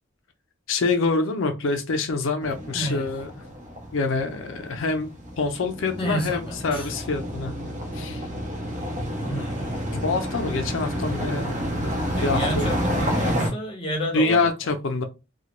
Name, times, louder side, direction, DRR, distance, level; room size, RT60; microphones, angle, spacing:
voice 1, 0.7-3.3 3.9-5.1 5.4-7.5 7.9-8.3 9.9-11.6 11.8-11.9 12.2-12.7 14.1-15.0, left 3 dB, 75° left, 0.5 m, -26 dB
sound 1, 2.4-13.5, equal, 40° right, 0.7 m, -29 dB
voice 2, 2.7-3.1 6.0-6.9 9.3-9.7 12.1-14.7, equal, 25° left, 0.6 m, -30 dB
2.3 x 2.1 x 2.9 m
head